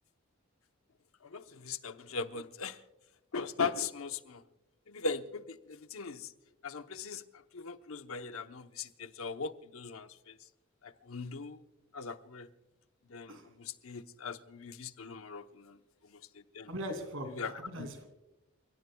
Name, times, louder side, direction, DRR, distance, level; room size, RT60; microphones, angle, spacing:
voice 1, 1.3-2.8 3.3-4.4 4.9-5.6 5.9-6.3 6.6-7.2 7.5-10.1 10.8-11.6 11.9-12.5 13.1-15.7 16.6-16.7 17.3-17.9, left 4 dB, 85° left, 0.9 m, -39 dB
voice 2, 16.7-18.1, equal, 75° right, 2.7 m, -40 dB
29.5 x 17.0 x 2.3 m
head